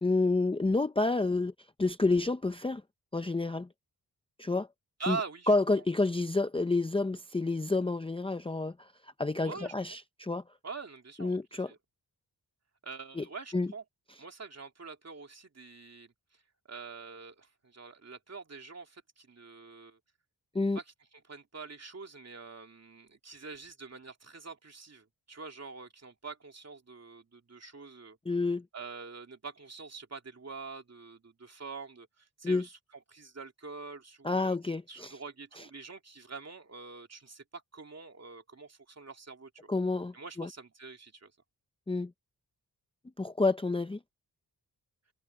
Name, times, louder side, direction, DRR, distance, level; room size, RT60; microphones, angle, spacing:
voice 1, 0.0-1.5 1.8-2.8 3.1-3.7 4.4-4.7 5.1-5.2 5.5-10.4 11.2-11.7 13.2-13.3 13.5-13.7 20.5-20.8 28.3-28.7 32.4-32.7 34.2-35.2 39.7-40.5 41.9-42.1 43.2-44.0, left 3 dB, 15° left, 0.5 m, -29 dB
voice 2, 5.0-5.8 9.4-9.7 10.6-11.4 11.7-11.8 12.8-13.8 14.2-16.4 16.7-20.0 20.7-20.9 21.3-28.2 28.7-32.8 33.1-34.6 34.9-39.7 40.1-41.3, right 4 dB, 40° right, 2.8 m, -45 dB
wide cardioid pair, 145°, 40 cm